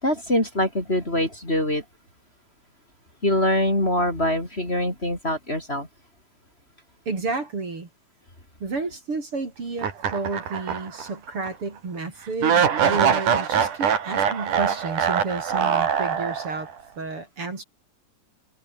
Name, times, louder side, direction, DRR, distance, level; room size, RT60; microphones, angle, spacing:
voice 1, 0.0-1.8 3.2-5.9, left 1 dB, 20° left, 4.9 m, -24 dB
voice 2, 7.1-7.9 8.6-17.6, right 3 dB, 45° right, 5.0 m, -31 dB
sound 1, 9.8-11.1 11.4-11.5 12.4-16.7, right 7 dB, 85° right, 4.3 m, -23 dB
omnidirectional pair, 3.5 m